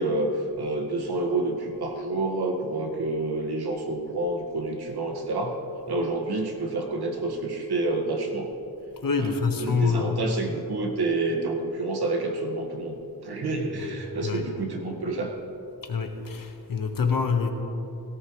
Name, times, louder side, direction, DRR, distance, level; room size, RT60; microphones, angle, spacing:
voice 1, 0.0-5.6 5.9-8.5 9.2-13.0 13.2-15.3, right 2 dB, 85° right, 2 dB, 1.8 m, -28 dB
voice 2, 9.0-10.1 13.7-14.5 15.8-17.5, left 5 dB, 60° left, 4 dB, 1.4 m, -26 dB
17.5 x 17.5 x 3.2 m, 2.9 s
wide cardioid pair, 135°, 38 cm